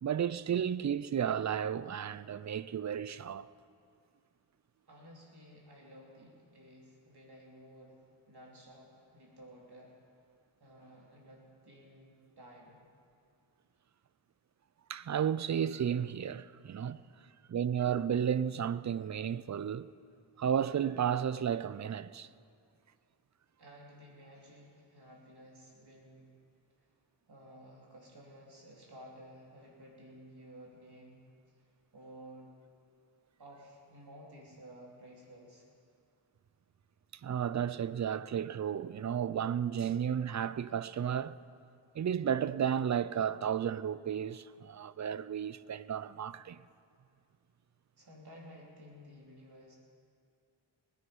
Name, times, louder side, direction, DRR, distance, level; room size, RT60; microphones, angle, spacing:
voice 1, 0.0-3.5 14.9-17.0 17.5-19.9 20.4-22.3 37.2-41.4 41.9-46.6, right 8 dB, 40° right, 0.5 m, -33 dB
voice 2, 4.9-8.0 8.3-10.0 10.6-12.8 16.8-17.0 23.6-26.3 26.8-27.0 27.3-31.3 31.9-32.5 33.4-35.7 48.0-49.8, equal, 55° right, 3.8 m, -54 dB
20.0 x 10.0 x 5.4 m
cardioid pair, 60°, 46 cm